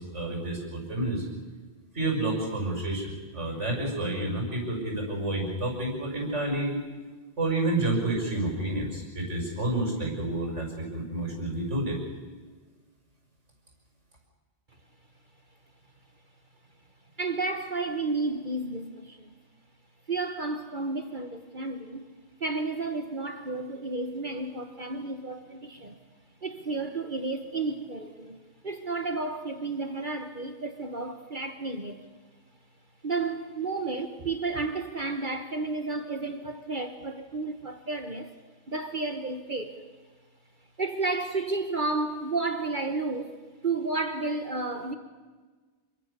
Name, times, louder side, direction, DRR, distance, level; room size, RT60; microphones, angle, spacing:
voice 1, 0.1-1.3 1.9-6.8 7.4-12.0, right 2 dB, 80° right, 6.5 m, -29 dB
voice 2, 17.2-19.3 20.1-22.0 22.4-26.0 26.4-28.4 28.6-32.0 33.0-38.3 38.7-39.8 40.8-43.3 43.6-44.9, right 3 dB, 45° right, 1.5 m, -32 dB
27.0 x 24.0 x 6.9 m
omnidirectional pair, 1.2 m